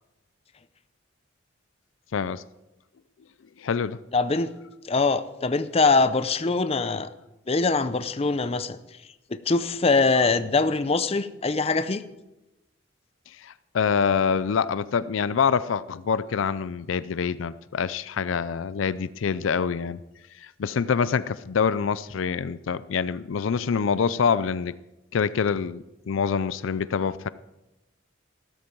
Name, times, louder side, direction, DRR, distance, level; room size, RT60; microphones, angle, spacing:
voice 1, 2.1-2.4 3.6-4.0 13.4-20.0 20.4-24.7 25.1-27.3, left 6 dB, 80° left, 16 dB, 0.4 m, -26 dB
voice 2, 4.1-4.5 4.9-7.1 7.5-8.8 9.3-12.0, left 3 dB, 30° left, 12 dB, 0.6 m, -23 dB
14.0 x 13.0 x 4.6 m, 0.98 s
head